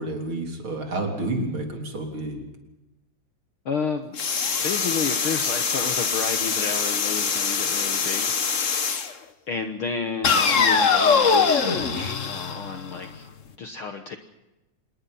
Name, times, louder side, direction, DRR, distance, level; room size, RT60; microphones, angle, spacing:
voice 1, 0.0-2.4, right 2 dB, 40° right, 3 dB, 4.2 m, -29 dB
voice 2, 3.7-4.2 4.6-8.4 9.5-13.3 13.6-14.2, left 5 dB, 55° left, 6 dB, 1.7 m, -31 dB
sound 1, 4.2-9.1 10.2-13.2, left 5 dB, 80° left, 0.7 m, -23 dB
26.5 x 20.5 x 5.7 m, 0.98 s
omnidirectional pair, 3.5 m